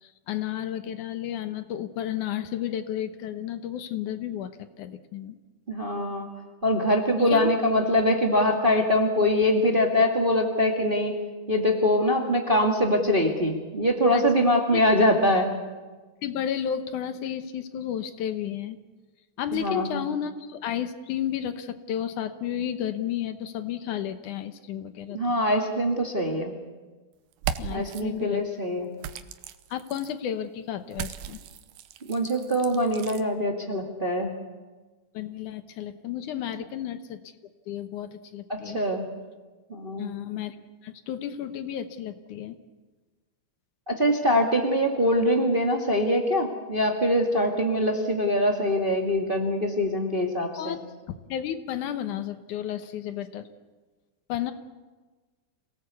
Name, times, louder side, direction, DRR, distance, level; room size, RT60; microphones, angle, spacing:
voice 1, 0.0-5.4 7.2-7.5 14.1-14.5 14.7-14.8 16.2-18.8 19.4-25.4 27.6-28.4 29.7-31.4 35.1-37.2 37.7-38.8 40.0-40.6 40.8-42.6 50.6-50.8 51.1-53.5 54.3-54.5, left 10 dB, 75° left, 10 dB, 2.4 m, -32 dB
voice 2, 5.7-6.3 6.6-11.1 11.5-15.6 19.5-20.0 25.1-26.5 27.7-28.9 32.1-34.3 38.5-39.1 39.7-40.1 43.9-50.8, left 1 dB, 20° right, 2 dB, 1.6 m, -23 dB
sound 1, 27.3-28.0 29.0-30.1 30.9-33.2, right 9 dB, 90° right, 2.6 m, -36 dB
26.5 x 18.0 x 8.3 m, 1.3 s
omnidirectional pair, 3.7 m